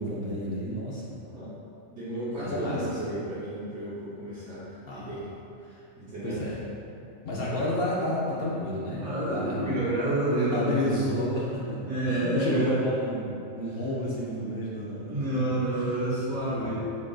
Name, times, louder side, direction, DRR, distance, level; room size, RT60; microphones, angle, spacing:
voice 1, 0.0-1.2 2.4-3.1 4.8-5.2 5.6-5.8 6.2-6.7 7.2-9.6 10.5-15.9 16.3-16.8, left 1 dB, 60° left, -6 dB, 0.6 m, -31 dB
voice 2, 1.3-1.6 1.9-5.3 6.0-6.4 9.0-10.9 11.9-12.7 14.9-16.8, right 1 dB, 55° right, -14 dB, 1.3 m, -30 dB
5.2 x 2.4 x 2.3 m, 2.6 s
omnidirectional pair, 1.4 m